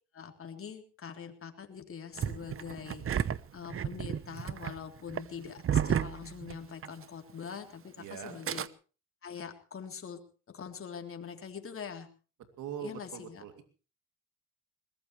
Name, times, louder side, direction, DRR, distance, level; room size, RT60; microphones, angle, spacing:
voice 1, 0.1-3.1 3.5-8.7 9.2-10.2 10.5-12.1 12.8-13.4, left 7 dB, 45° left, 5 dB, 3.4 m, -43 dB
Engine starting, 2.2-7.0 7.3-7.4 8.2-8.7, right 8 dB, 45° right, 0.9 m, -32 dB
voice 2, 8.0-8.4 12.6-13.6, right 9 dB, 85° right, 7 dB, 2.9 m, -42 dB
21.5 x 19.5 x 3.3 m, 0.36 s
cardioid pair, 90°, 30 cm